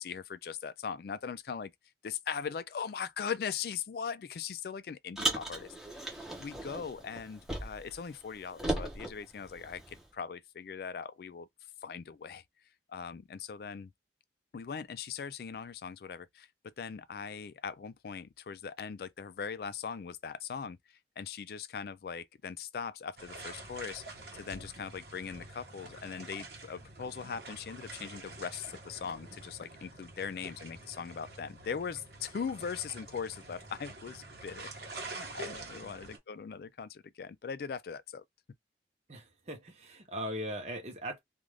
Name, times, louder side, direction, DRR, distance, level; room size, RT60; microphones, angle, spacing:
voice 1, 0.0-1.7 2.0-11.5 11.8-12.4 12.9-13.9 14.5-20.8 21.2-34.7 35.1-38.2, left 6 dB, 55° left, 0.3 m, -40 dB
Car, 5.2-8.0 8.2-10.0, right 1 dB, 5° right, 0.7 m, -37 dB
sound 1, 23.2-36.2, right 2 dB, 65° right, 1.0 m, -47 dB
voice 2, 39.1-41.2, equal, 35° right, 0.9 m, -39 dB
2.5 x 2.4 x 3.1 m
head